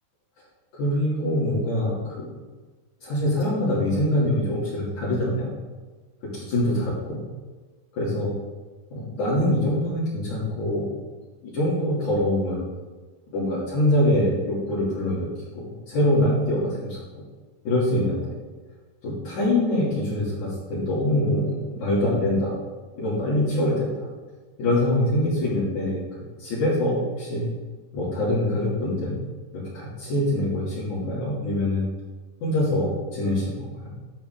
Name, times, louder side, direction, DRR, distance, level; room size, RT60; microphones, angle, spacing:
voice 1, 0.7-2.3 3.0-5.5 6.5-7.2 8.0-8.3 8.9-10.9 11.4-12.7 13.3-15.3 15.5-17.0 17.6-18.3 19.0-22.5 23.0-24.1 24.6-26.0 26.4-27.4 27.9-29.1 29.5-31.9 32.4-33.9, left 1 dB, 50° left, -10 dB, 4.2 m, -24 dB
12.0 x 8.1 x 3.8 m, 1.3 s
omnidirectional pair, 4.5 m